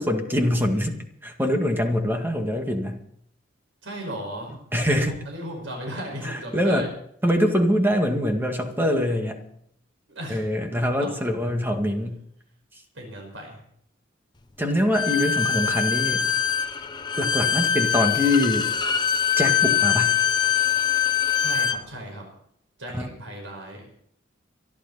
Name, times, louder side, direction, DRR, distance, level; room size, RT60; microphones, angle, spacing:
voice 1, 0.0-3.0 4.7-5.1 6.2-6.9 7.2-9.4 10.3-12.2 14.6-16.3 17.2-18.7 19.4-20.2 22.9-23.1, left 1 dB, 10° right, 4 dB, 2.0 m, -24 dB
voice 2, 3.8-4.5 4.9-6.9 7.2-7.3 10.1-10.4 11.0-11.2 12.9-13.6 21.4-22.3 22.8-23.9, equal, 80° right, 1 dB, 5.4 m, -36 dB
Bowed string instrument, 14.9-21.8, left 8 dB, 25° left, 0.8 m, -23 dB
24.0 x 11.5 x 4.2 m, 0.69 s
head